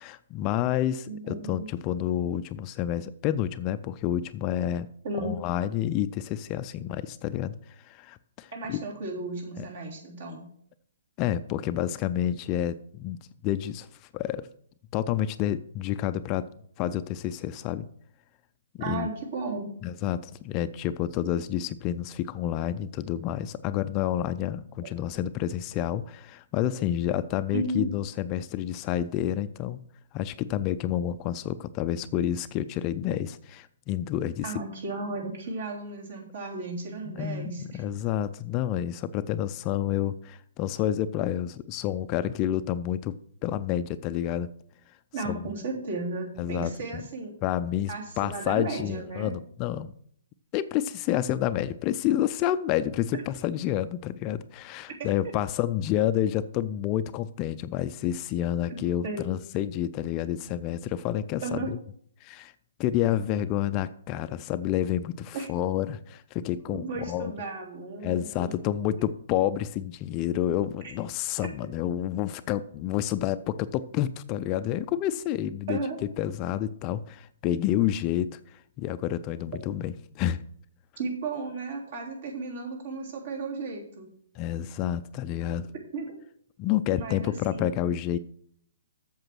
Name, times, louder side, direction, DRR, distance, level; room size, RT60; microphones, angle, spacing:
voice 1, 0.0-4.9 5.2-7.6 7.8-8.8 9.6-9.7 11.2-13.9 14.1-14.5 14.9-16.5 16.8-17.9 18.7-19.1 19.8-29.8 30.1-34.5 37.1-43.2 43.4-44.5 45.3-45.5 46.4-47.1 47.4-49.9 50.5-61.8 62.2-62.5 62.8-67.3 68.0-80.4 84.4-85.7 86.6-88.2, left 11 dB, 30° left, 13 dB, 0.4 m, -29 dB
voice 2, 1.1-1.7 5.0-5.3 8.5-10.4 18.8-19.7 24.8-24.9 27.5-27.9 34.4-37.8 45.1-47.3 47.9-49.3 59.0-59.3 61.4-61.7 65.3-65.5 66.7-68.5 69.0-69.1 70.8-70.9 75.7-76.0 81.0-84.1 85.9-86.2 86.9-87.7, right 3 dB, 60° right, 0 dB, 3.2 m, -34 dB
7.9 x 6.8 x 6.1 m, 0.64 s
hypercardioid pair, 145°, 0 cm